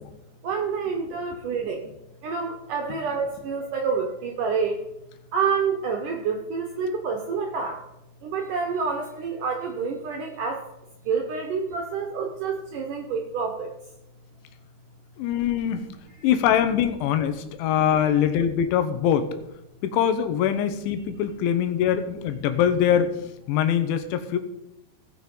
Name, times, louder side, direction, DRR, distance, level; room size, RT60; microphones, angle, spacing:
voice 1, 0.4-1.8 2.2-4.8 5.3-7.8 8.2-10.6 11.1-13.7, right 5 dB, 75° right, 3 dB, 2.0 m, -28 dB
voice 2, 15.2-15.8 16.2-19.3 19.8-23.1 23.5-24.4, left 9 dB, 90° left, 9 dB, 3.4 m, -23 dB
18.0 x 6.2 x 5.4 m, 0.88 s
omnidirectional pair, 5.2 m